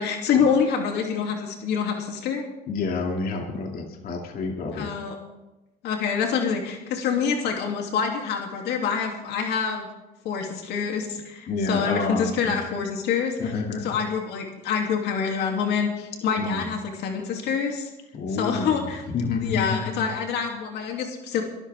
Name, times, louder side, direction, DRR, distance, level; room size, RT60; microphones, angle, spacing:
voice 1, 0.0-2.4 4.7-5.1 5.8-9.9 10.2-13.4 13.8-17.9 18.4-19.0 19.4-21.4, left 6 dB, 80° left, 2 dB, 2.9 m, -26 dB
voice 2, 2.7-4.9 11.5-12.8 13.4-13.8 16.4-16.8 18.1-20.1, left 3 dB, 60° left, 1 dB, 2.6 m, -29 dB
22.5 x 14.0 x 3.6 m, 1.0 s
cardioid pair, 110°, 17 cm